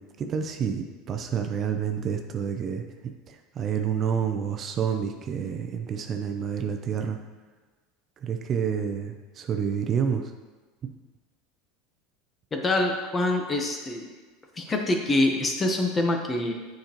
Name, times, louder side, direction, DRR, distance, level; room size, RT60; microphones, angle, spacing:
voice 1, 0.0-7.2 8.2-10.3 10.8-10.9, right 7 dB, 40° right, 5 dB, 0.6 m, -29 dB
voice 2, 12.5-14.1 14.6-16.5, left 2 dB, 20° left, 3 dB, 1.0 m, -25 dB
7.8 x 5.2 x 3.0 m, 1.3 s
hypercardioid pair, 100°, 0 cm